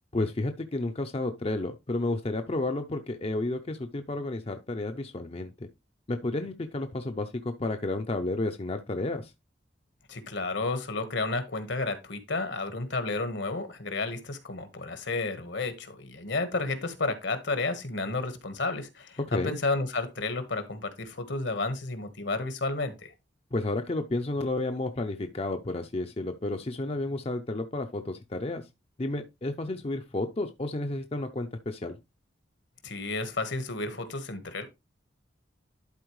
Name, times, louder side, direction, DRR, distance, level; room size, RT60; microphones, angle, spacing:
voice 1, 0.1-5.7 6.1-9.3 19.3-19.6 23.5-28.7 29.0-32.0, left 2 dB, 30° left, 0.5 m, -31 dB
voice 2, 10.1-23.1 32.8-34.6, left 3 dB, 70° left, 1.4 m, -31 dB
11.5 x 4.3 x 3.1 m
head